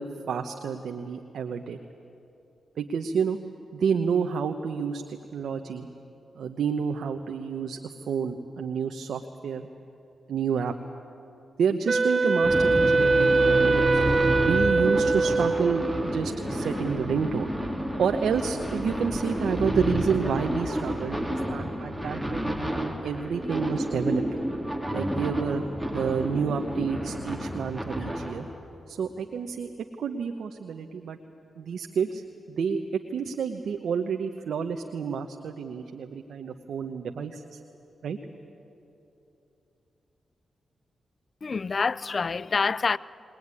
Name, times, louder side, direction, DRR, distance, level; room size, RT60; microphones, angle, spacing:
voice 1, 0.0-1.8 2.8-3.4 3.7-5.9 6.3-7.8 8.1-9.7 10.3-10.7 11.6-14.0 14.5-17.5 18.0-24.4 24.9-25.6 25.9-28.5 28.9-29.7 30.0-31.2 31.6-32.2 32.5-37.6 38.0-38.2, right 6 dB, 80° right, 1.0 m, -29 dB
Wind instrument woodwind instrument, 11.9-16.2, right 3 dB, 45° right, 1.0 m, -23 dB
sound 1, 12.4-28.5, equal, ahead, 3.9 m, -30 dB
voice 2, 41.4-43.0, left 4 dB, 50° left, 0.5 m, -26 dB
21.5 x 20.0 x 9.8 m
supercardioid pair, 50°, 0 cm